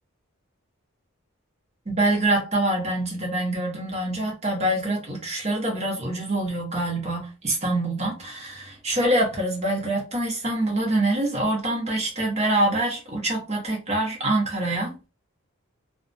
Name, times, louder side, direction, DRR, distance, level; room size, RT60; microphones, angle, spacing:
voice 1, 1.9-14.9, right 1 dB, 30° right, 0.9 m, -25 dB
2.3 x 2.2 x 2.6 m
head